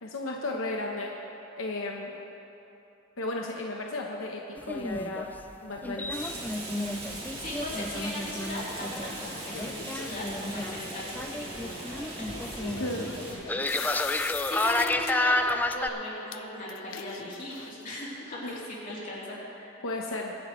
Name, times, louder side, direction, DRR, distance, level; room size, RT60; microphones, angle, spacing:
voice 1, 0.0-1.1 1.6-2.2 3.2-5.3 5.6-6.1 12.7-13.1 18.4-18.6 19.8-20.4, left 2 dB, 85° left, 0 dB, 0.9 m, -34 dB
sound 1, 4.6-15.9, left 2 dB, 10° left, 0.3 m, -31 dB
Rain, 6.1-13.3, right 1 dB, 30° right, 2.8 m, -40 dB
voice 2, 7.1-12.3 12.7-13.7 14.2-15.4 15.7-19.7, left 1 dB, 40° left, -7 dB, 3.3 m, -39 dB
sound 2, 9.5-10.3 12.3-15.1 15.5-15.8 16.3-16.4 16.7-17.9, left 9 dB, 70° left, 0.5 m, -41 dB
22.5 x 10.5 x 3.1 m, 3.0 s
head